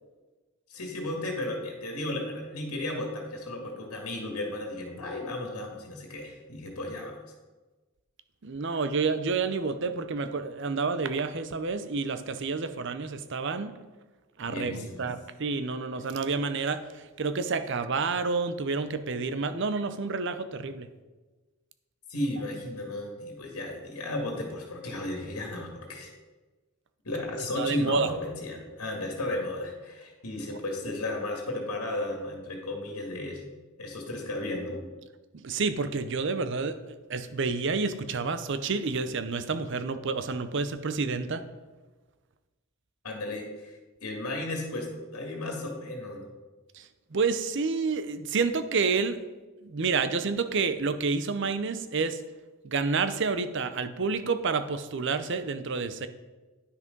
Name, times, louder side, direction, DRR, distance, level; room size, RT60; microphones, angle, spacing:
voice 1, 0.7-7.2 14.5-15.1 22.1-26.1 27.0-33.4 33.8-34.8 43.0-46.3, left 1 dB, 85° left, 1 dB, 2.0 m, -34 dB
voice 2, 8.4-13.7 14.4-20.9 27.6-28.1 35.3-36.8 37.1-41.4 46.7-49.2 49.6-52.2 52.6-56.1, right 4 dB, 55° right, 11 dB, 0.6 m, -29 dB
10.0 x 6.1 x 5.3 m, 1.2 s
head